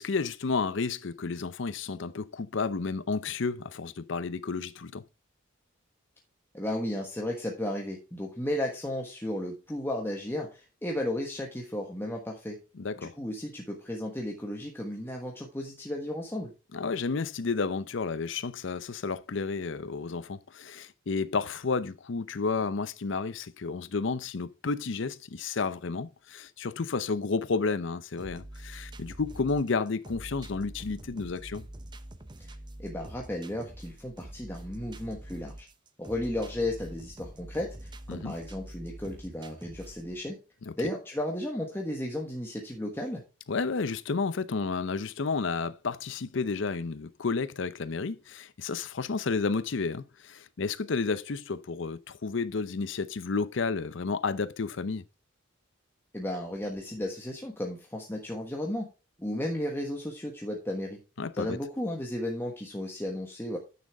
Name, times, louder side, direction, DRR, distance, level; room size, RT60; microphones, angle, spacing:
voice 1, 0.0-5.0 12.8-13.1 16.7-31.7 38.1-38.3 40.7-40.8 43.5-55.0 61.2-61.6, left 4 dB, 60° left, 0.6 m, -31 dB
voice 2, 6.5-12.6 13.0-16.5 32.4-32.5 32.8-35.7 36.0-40.4 40.8-43.2 56.1-58.9 59.2-61.0 61.3-63.6, left 1 dB, 10° left, 1.2 m, -34 dB
sound 1, 28.2-40.2, right 1 dB, 20° right, 0.7 m, -45 dB
10.0 x 6.5 x 3.4 m
head